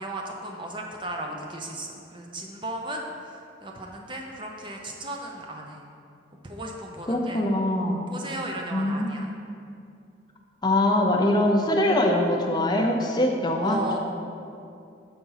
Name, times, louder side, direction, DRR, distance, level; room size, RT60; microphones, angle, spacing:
voice 1, 0.0-5.8 6.4-7.5 8.1-9.3 13.6-14.0, right 1 dB, 25° right, 1 dB, 0.7 m, -35 dB
voice 2, 7.1-8.0 8.7-9.1 10.6-14.0, left 1 dB, 20° left, 1 dB, 0.6 m, -23 dB
7.1 x 4.1 x 5.6 m, 2.5 s
head